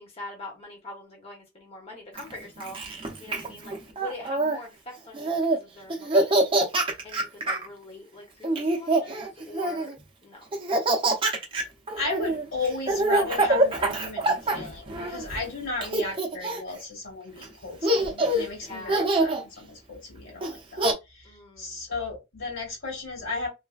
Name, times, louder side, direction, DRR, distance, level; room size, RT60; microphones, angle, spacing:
voice 1, 0.0-6.6 6.8-9.9 10.2-10.4 18.3-19.1 21.2-21.8, left 2 dB, 30° left, 0.8 m, -43 dB
Laughter, 2.2-4.6 5.1-5.6 5.9-7.7 8.4-9.9 10.5-15.4 15.8-16.8 17.4-17.5 17.8-18.5 18.9-19.4 20.4-20.9, right 2 dB, 25° right, 0.6 m, -25 dB
voice 2, 12.0-23.5, left 3 dB, 90° left, 1.8 m, -35 dB
3.2 x 2.1 x 2.3 m
head